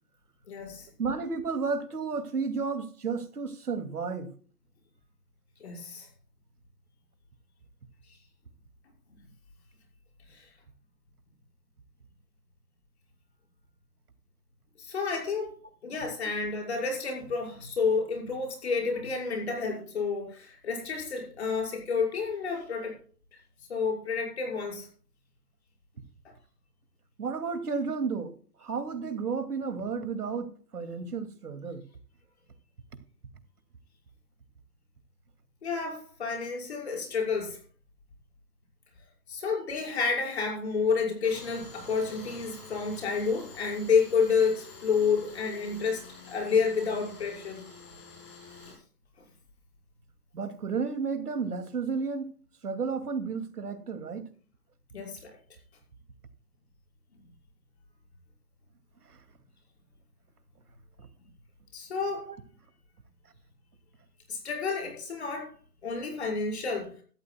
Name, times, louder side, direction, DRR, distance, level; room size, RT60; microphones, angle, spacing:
voice 1, 0.5-0.9 5.6-6.1 10.3-10.5 14.8-15.5 15.8-23.0 23.7-24.9 26.2-26.3 35.6-37.6 39.3-47.6 54.9-55.4 61.7-62.3 64.3-65.5 65.8-66.9, left 5 dB, 45° left, 6.0 m, -30 dB
voice 2, 1.0-4.3 27.2-31.8 50.3-52.3 52.6-54.3 59.1-59.2 61.0-61.1 62.3-62.4, right 5 dB, 70° right, 2.6 m, -32 dB
Tools, 41.2-48.7, left 3 dB, 20° left, 4.5 m, -48 dB
17.5 x 13.5 x 2.3 m
hypercardioid pair, 170°, 47 cm